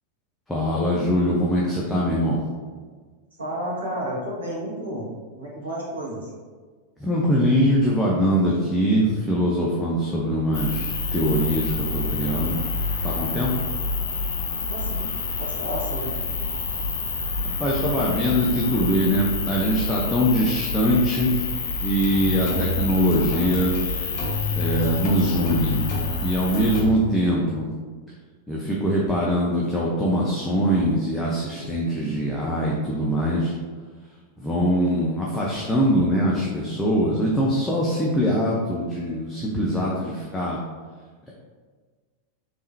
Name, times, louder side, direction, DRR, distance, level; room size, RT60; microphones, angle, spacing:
voice 1, 0.5-2.4 7.0-12.6 13.0-13.5 17.4-21.4 21.8-23.7 24.5-25.8 26.2-27.7 28.5-33.5 34.4-40.6 41.3-41.4, equal, 5° left, -6 dB, 0.6 m, -22 dB
voice 2, 3.4-5.1 5.3-6.3 14.7-15.1 15.4-16.1, equal, 70° right, -5 dB, 1.0 m, -31 dB
sound 1, 10.5-26.8, left 4 dB, 65° left, 0.5 m, -28 dB
sound 2, 22.0-23.8 24.2-27.0, left 3 dB, 40° left, 0.9 m, -29 dB
3.5 x 3.2 x 2.7 m, 1.5 s
figure-of-eight pair, 90°, 0 cm